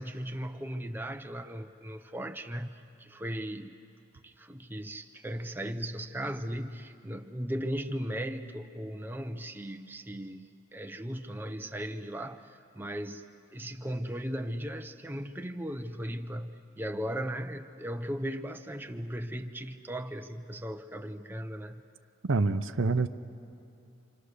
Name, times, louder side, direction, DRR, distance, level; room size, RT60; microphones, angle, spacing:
voice 1, 0.0-3.8 4.2-13.2 13.5-21.8, equal, 10° right, 6 dB, 0.7 m, -37 dB
voice 2, 22.3-23.1, right 3 dB, 80° right, 11 dB, 0.7 m, -26 dB
29.5 x 25.5 x 6.6 m, 2.7 s
head